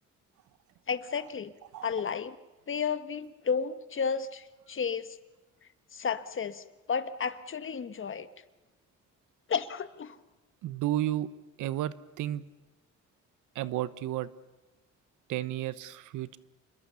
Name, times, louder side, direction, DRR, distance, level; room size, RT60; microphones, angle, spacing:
voice 1, 0.9-1.5 1.8-2.3 2.7-5.2 5.9-8.3 9.5-10.2, left 6 dB, 40° left, 12 dB, 1.4 m, -32 dB
voice 2, 10.6-11.3 11.6-12.4 13.5-14.3 15.3-16.4, right 13 dB, 85° right, 16 dB, 1.0 m, -32 dB
28.0 x 21.5 x 7.0 m, 1.1 s
cardioid pair, 90°, 30 cm